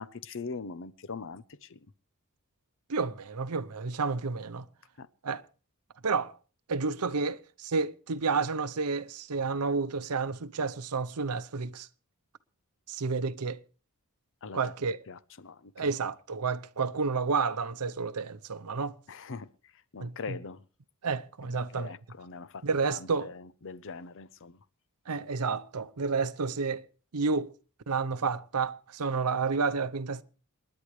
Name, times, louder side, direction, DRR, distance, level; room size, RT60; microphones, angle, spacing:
voice 1, 0.0-1.8 5.0-5.1 14.4-14.6 15.1-15.9 19.1-19.5 19.9-20.6 21.5-24.6, left 4 dB, 60° left, 0.7 m, -42 dB
voice 2, 2.9-4.7 5.2-5.4 6.0-6.4 6.7-11.9 12.9-13.6 14.5-15.0 15.8-19.0 20.0-20.4 21.0-21.9 22.6-23.3 25.1-26.8 27.1-27.5 27.9-30.2, right 4 dB, 85° right, 0.8 m, -30 dB
28.5 x 10.5 x 3.2 m
head